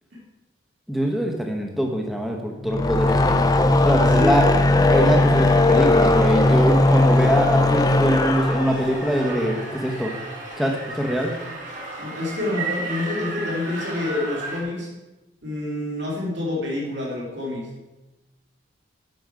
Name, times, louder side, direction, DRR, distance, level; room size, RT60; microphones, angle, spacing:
voice 1, 0.9-3.4 3.8-4.5 4.9-10.1 10.6-11.3, right 1 dB, ahead, 1 dB, 1.0 m, -23 dB
sound 1, 2.6-10.0, left 2 dB, 20° left, 0.4 m, -18 dB
sound 2, 5.1-14.6, right 2 dB, 40° right, 1.9 m, -35 dB
voice 2, 12.0-14.9 15.4-17.7, left 2 dB, 60° right, -4 dB, 2.9 m, -27 dB
9.4 x 6.1 x 5.1 m, 1.0 s
head